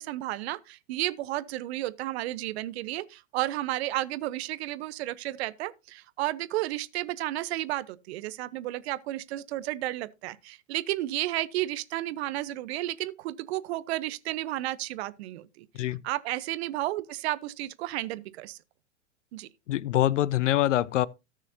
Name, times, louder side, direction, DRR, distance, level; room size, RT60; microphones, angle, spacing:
voice 1, 0.0-15.7 16.0-18.6 19.3-19.5, right 16 dB, 60° right, 1.0 m, -32 dB
voice 2, 19.7-21.1, left 13 dB, 80° left, 0.6 m, -24 dB
18.0 x 6.2 x 2.8 m
hypercardioid pair, 105°, 36 cm